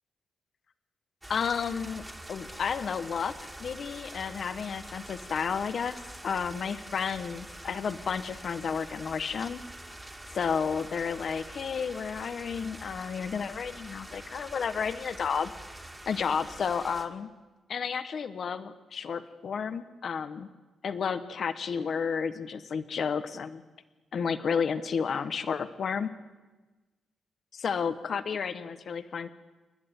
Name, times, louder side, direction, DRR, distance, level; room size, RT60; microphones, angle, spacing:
sound 1, 1.2-17.1, right 1 dB, 10° right, 2.2 m, -45 dB
voice 1, 1.3-9.6 10.3-15.5 16.1-17.3 17.7-20.5 20.8-23.6 24.1-26.1 27.6-29.3, left 6 dB, 55° left, 11 dB, 1.1 m, -32 dB
29.0 x 11.5 x 9.5 m, 1.2 s
cardioid pair, 125°, 0 cm